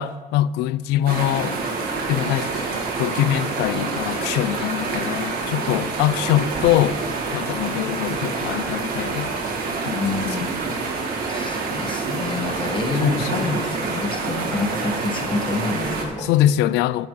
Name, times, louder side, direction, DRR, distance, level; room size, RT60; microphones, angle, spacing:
voice 1, 0.0-1.6 2.1-7.0 7.3-9.3 9.9-10.4 10.7-10.8 13.0-13.5 16.2-17.1, left 12 dB, 85° left, 0.4 m, -23 dB
sound 1, 1.0-16.0, right 4 dB, 60° right, 2.3 m, -27 dB
voice 2, 9.9-10.6 11.3-16.3, left 3 dB, 30° left, 1.6 m, -27 dB
11.5 x 8.7 x 4.0 m
cardioid pair, 110°, 17 cm